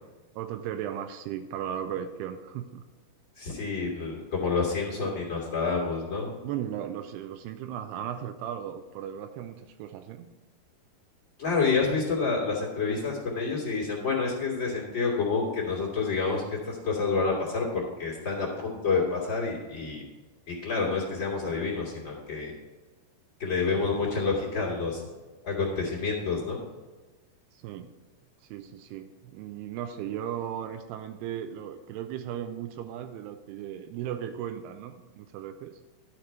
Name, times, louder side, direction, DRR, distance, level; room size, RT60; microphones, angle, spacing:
voice 1, 0.4-2.8 6.4-10.3 27.5-27.9 28.4-35.8, right 10 dB, 85° right, 7 dB, 2.6 m, -36 dB
voice 2, 3.4-6.3 11.4-20.0 20.5-22.5 23.4-25.0 25.4-26.6, left 4 dB, 35° left, -4 dB, 2.2 m, -28 dB
11.5 x 6.5 x 4.4 m, 1.2 s
omnidirectional pair, 4.6 m